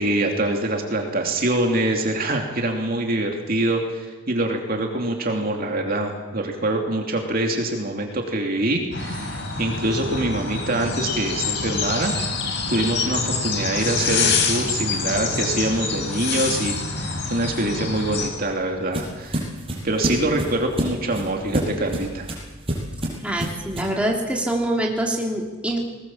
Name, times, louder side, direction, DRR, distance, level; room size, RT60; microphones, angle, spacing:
voice 1, 0.0-12.1 12.7-19.4 19.8-22.3, right 1 dB, 45° right, 2 dB, 2.8 m, -24 dB
sound 1, 8.9-18.3, left 4 dB, 60° left, 4.0 m, -26 dB
sound 2, 18.0-24.0, right 1 dB, 30° right, 6.3 m, -29 dB
voice 2, 23.2-25.8, right 1 dB, 5° right, -1 dB, 3.3 m, -24 dB
21.0 x 20.0 x 7.3 m, 1.2 s
head